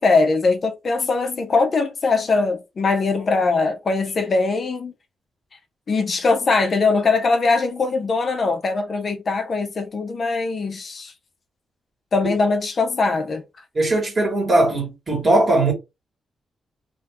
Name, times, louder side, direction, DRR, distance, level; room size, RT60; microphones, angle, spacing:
voice 1, 0.0-4.9 5.9-11.1 12.1-13.4, left 3 dB, 40° left, 0.4 m, -21 dB
voice 2, 13.7-15.7, right 2 dB, 30° right, 1.5 m, -19 dB
2.6 x 2.4 x 3.4 m
cardioid pair, 130°, 0 cm